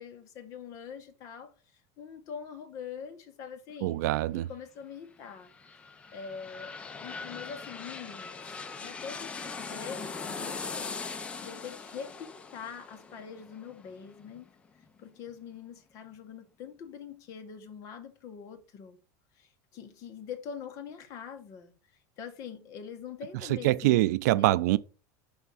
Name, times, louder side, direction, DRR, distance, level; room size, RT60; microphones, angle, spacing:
voice 1, 0.0-1.5 2.0-4.0 4.3-5.5 6.1-14.5 15.0-19.0 19.4-21.7 22.2-24.0 24.4-24.6, left 7 dB, 40° left, 1.0 m, -44 dB
voice 2, 3.8-4.5 23.5-24.8, right 17 dB, 80° right, 0.3 m, -24 dB
sound 1, 5.2-14.9 15.3-15.4, left 4 dB, 15° left, 0.4 m, -41 dB
5.6 x 3.5 x 5.5 m
supercardioid pair, 165°, 9 cm